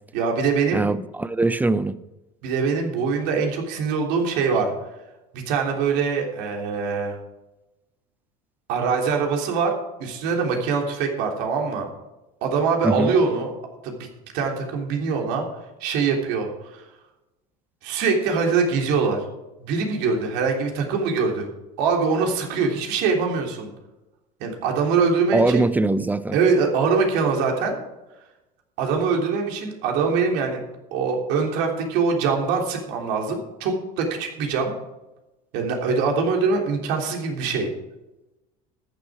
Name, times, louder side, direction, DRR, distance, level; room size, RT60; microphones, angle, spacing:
voice 1, 0.1-0.9 2.4-4.7 5.3-7.2 8.7-9.7 10.0-11.9 12.4-13.5 13.8-14.1 14.3-15.5 15.8-16.8 17.8-19.3 19.6-21.5 21.8-23.7 24.4-25.7 26.3-27.8 28.8-30.6 30.9-34.7 35.5-37.7, right 5 dB, 70° right, 3.4 m, -23 dB
voice 2, 0.7-2.0 12.8-13.1 25.3-26.4, right 2 dB, 10° right, 0.7 m, -22 dB
14.0 x 10.5 x 4.9 m
supercardioid pair, 90°, 18 cm